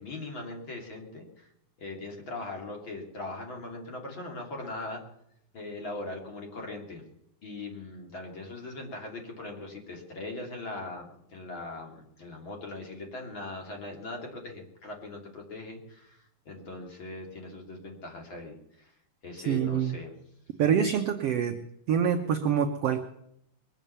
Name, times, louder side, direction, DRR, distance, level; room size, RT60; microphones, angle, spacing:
voice 1, 0.0-1.5 1.8-5.0 5.5-7.0 7.4-18.9 19.2-20.1, left 2 dB, 35° left, 1 dB, 3.2 m, -40 dB
voice 2, 19.5-20.0 20.6-21.6 21.9-23.0, right 8 dB, 75° right, 5 dB, 1.4 m, -25 dB
22.5 x 9.1 x 6.9 m, 0.75 s
omnidirectional pair, 4.1 m